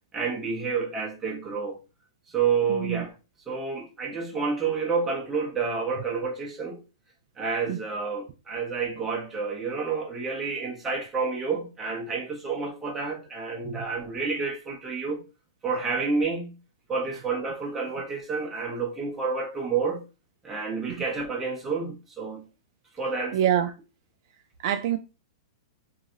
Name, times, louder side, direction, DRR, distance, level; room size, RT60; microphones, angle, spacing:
voice 1, 0.1-1.8 2.3-3.1 3.5-6.8 7.4-15.2 15.6-16.6 16.9-20.0 20.4-22.4 22.9-23.4, right 5 dB, 10° right, 1.0 m, -29 dB
voice 2, 2.7-3.0 7.7-7.8 13.6-13.8 23.3-23.7 24.6-25.0, right 10 dB, 50° right, 0.4 m, -25 dB
3.0 x 2.8 x 2.5 m
hypercardioid pair, 145°, 3 cm